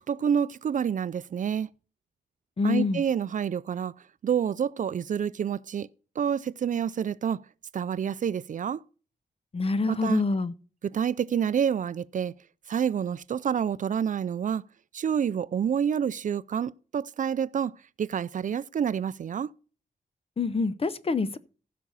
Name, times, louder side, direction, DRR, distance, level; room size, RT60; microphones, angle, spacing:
voice 1, 0.0-1.7 2.6-3.9 4.2-5.9 6.2-7.4 7.7-8.8 9.9-10.2 10.8-12.3 12.7-14.6 14.9-17.7 18.0-19.5, right 8 dB, 55° right, 0.4 m, -28 dB
voice 2, 2.6-3.0 9.5-10.5 20.4-21.4, left 4 dB, 35° left, 0.7 m, -26 dB
15.5 x 6.0 x 4.0 m
wide cardioid pair, 125°, 16 cm